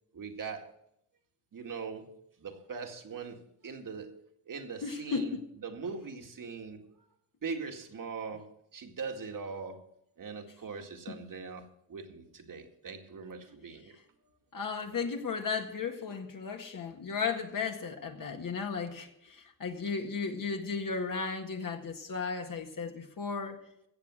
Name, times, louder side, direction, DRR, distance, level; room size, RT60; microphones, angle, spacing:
voice 1, 0.1-0.7 1.5-4.2 4.5-6.9 7.4-9.8 10.2-14.0 14.2-14.4 15.0-15.2, right 5 dB, 55° right, 4 dB, 2.1 m, -41 dB
voice 2, 4.8-5.4 11.1-11.2 14.5-23.6, left 5 dB, 55° left, 3 dB, 1.9 m, -35 dB
16.0 x 7.1 x 6.3 m, 0.76 s
cardioid pair, 75°, 38 cm